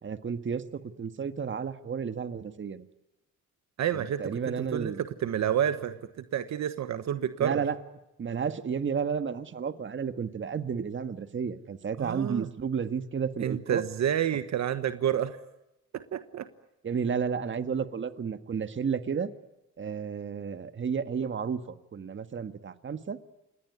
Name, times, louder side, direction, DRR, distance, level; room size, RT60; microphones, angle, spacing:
voice 1, 0.0-2.9 3.9-5.0 7.4-7.8 8.2-13.8 16.8-19.3 19.8-23.2, right 6 dB, 40° right, 10 dB, 1.7 m, -32 dB
voice 2, 3.8-7.6 12.0-12.5 13.4-15.4 15.9-16.5, right 10 dB, 65° right, 11 dB, 1.3 m, -29 dB
28.0 x 20.5 x 9.6 m, 0.95 s
cardioid pair, 90°, 30 cm